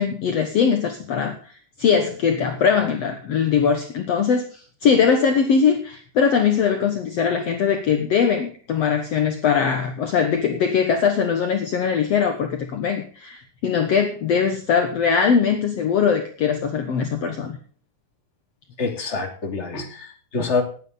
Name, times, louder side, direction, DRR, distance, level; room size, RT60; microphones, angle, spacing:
voice 1, 0.0-1.5 1.8-17.6, left 6 dB, 60° left, 5 dB, 2.1 m, -21 dB
voice 2, 18.8-20.6, left 4 dB, 20° left, 3 dB, 2.6 m, -26 dB
18.5 x 9.2 x 4.0 m, 0.43 s
omnidirectional pair, 3.7 m